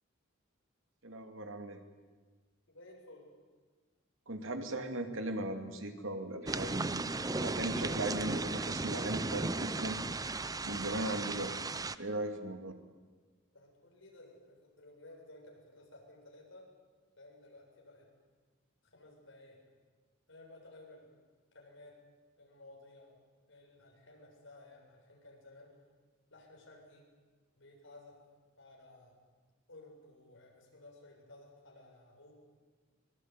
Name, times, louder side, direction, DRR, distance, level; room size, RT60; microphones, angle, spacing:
voice 1, 1.0-1.8 4.3-10.0 10.6-11.5 12.0-12.7, right 1 dB, 70° right, 6 dB, 2.7 m, -38 dB
voice 2, 2.7-3.3 12.5-12.6 13.5-16.7 17.2-18.1 18.8-19.6 20.3-21.1 21.5-22.0 22.4-23.1 23.5-25.8 26.3-27.1 27.6-28.2 28.6-29.2 29.7-32.3, left 2 dB, 70° left, 0 dB, 7.5 m, -56 dB
sound 1, 6.5-11.9, right 3 dB, 20° right, 0.7 m, -36 dB
24.0 x 20.5 x 9.6 m, 1.4 s
head